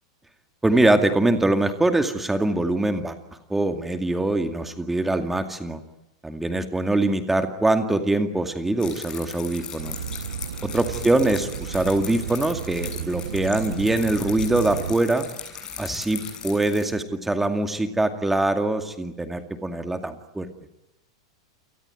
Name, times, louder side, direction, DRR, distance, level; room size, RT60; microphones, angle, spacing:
voice 1, 0.6-3.2 3.5-5.8 6.2-9.9 10.6-15.3 15.8-20.5, right 2 dB, 5° right, 7 dB, 2.3 m, -23 dB
sound 1, 8.8-16.9, left 8 dB, 30° left, 7.6 m, -38 dB
sound 2, 9.8-14.9, right 8 dB, 70° right, 1.4 m, -34 dB
29.0 x 19.5 x 9.2 m, 0.92 s
figure-of-eight pair, 95°, 3 cm